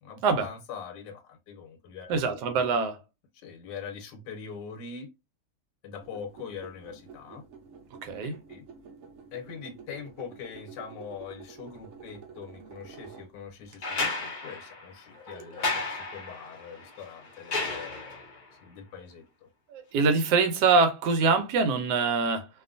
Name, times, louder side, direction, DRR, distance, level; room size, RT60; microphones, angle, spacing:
voice 1, 0.0-2.2 3.3-5.1 5.8-7.4 8.0-8.6 9.3-19.5, left 6 dB, 90° left, 1.3 m, -43 dB
voice 2, 2.1-3.0 8.0-8.4 15.3-15.4 19.7-22.5, right 4 dB, 75° right, 1.2 m, -24 dB
sound 1, 6.0-13.7, right 6 dB, 60° right, 0.9 m, -49 dB
sound 2, 13.8-18.4 20.0-20.1, left 3 dB, 55° left, 0.5 m, -33 dB
2.8 x 2.3 x 2.5 m
omnidirectional pair, 1.8 m